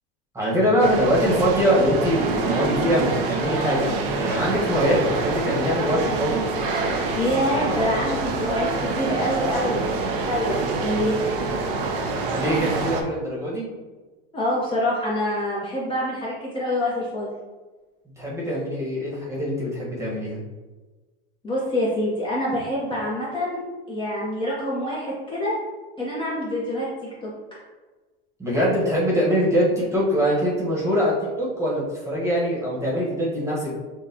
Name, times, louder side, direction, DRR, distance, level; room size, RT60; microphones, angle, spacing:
voice 1, 0.3-6.4 12.3-13.7 18.2-20.4 28.4-33.7, equal, 10° right, -6 dB, 1.2 m, -23 dB
sound 1, 0.8-13.0, right 3 dB, 65° right, 0.7 m, -26 dB
voice 2, 7.1-11.1 14.3-17.3 21.4-23.6 23.9-25.5 26.0-27.3, left 1 dB, 15° left, -7 dB, 1.0 m, -26 dB
6.3 x 2.4 x 2.8 m, 1.3 s
supercardioid pair, 130°, 30 cm